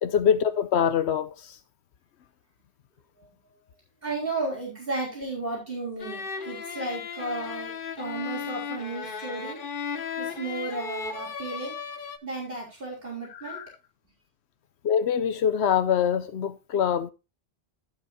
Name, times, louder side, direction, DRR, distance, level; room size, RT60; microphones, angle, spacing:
voice 1, 0.0-1.6 13.3-13.7 14.8-17.1, left 8 dB, 85° left, 1.0 m, -24 dB
voice 2, 4.0-9.6 10.2-11.8 12.2-13.6, right 2 dB, 60° right, 4.1 m, -34 dB
sound 1, 6.0-12.2, left 6 dB, 55° left, 1.0 m, -35 dB
15.5 x 6.2 x 2.7 m
omnidirectional pair, 1.1 m